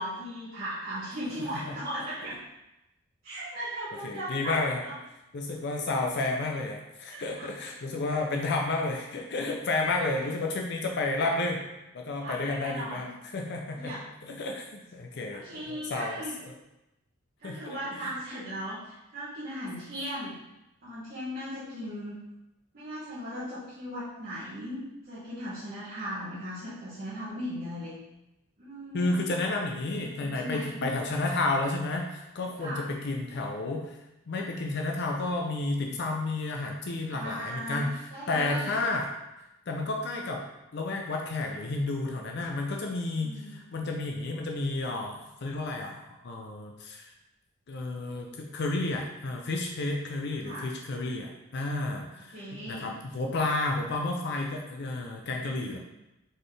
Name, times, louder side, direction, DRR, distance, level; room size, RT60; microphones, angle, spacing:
voice 1, 0.0-2.4 3.2-4.5 4.8-4.9 7.1-7.5 10.1-10.3 12.2-13.1 13.7-14.0 15.3-16.3 17.4-20.4 20.8-22.2 22.7-27.9 28.6-29.3 29.9-30.9 32.6-32.9 37.1-38.8 43.2-43.7 50.4-50.7 52.3-53.0, equal, 45° right, -13 dB, 1.3 m, -38 dB
voice 2, 4.0-4.8 5.3-11.6 11.9-13.9 14.2-16.2 17.4-17.8 18.0-18.1 28.9-34.0 34.3-37.9 38.3-39.1 39.7-40.5 40.7-46.0 46.2-47.1 47.7-52.4 52.7-55.8, left 2 dB, 50° left, 1 dB, 0.5 m, -31 dB
4.0 x 3.9 x 3.3 m, 0.93 s
head